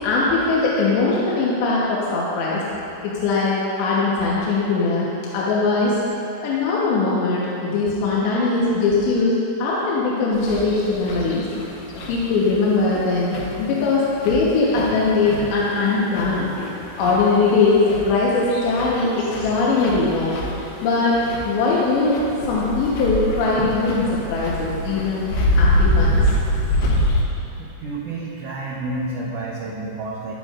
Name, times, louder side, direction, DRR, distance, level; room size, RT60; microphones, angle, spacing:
voice 1, 0.0-2.6 3.0-5.1 5.3-5.9 6.4-9.3 9.6-11.4 12.1-16.5 17.0-20.4 20.8-26.2, left 3 dB, 80° left, -6 dB, 3.3 m, -20 dB
sound 1, 10.3-27.2, left 1 dB, 65° left, 2.4 m, -25 dB
voice 2, 27.6-30.3, right 2 dB, 85° right, -5 dB, 1.8 m, -30 dB
14.5 x 11.0 x 2.5 m, 2.8 s
omnidirectional pair, 5.0 m